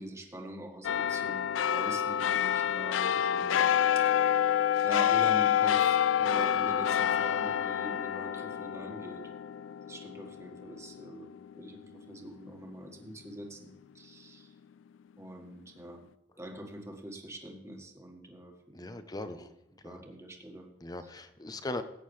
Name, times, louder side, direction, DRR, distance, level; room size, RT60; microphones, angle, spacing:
voice 1, 0.0-4.0 4.8-9.3 9.9-11.3 11.6-14.5 15.2-16.0 16.4-19.0 19.3-19.5 19.8-20.7 21.4-21.6, right 1 dB, 15° right, 1 dB, 1.6 m, -44 dB
sound 1, 0.8-11.6 12.0-12.1, left 9 dB, 85° left, 0.3 m, -28 dB
voice 2, 18.7-19.5 19.8-20.0 20.8-21.8, left 2 dB, 20° left, 10 dB, 0.7 m, -39 dB
17.0 x 8.8 x 3.2 m, 0.86 s
head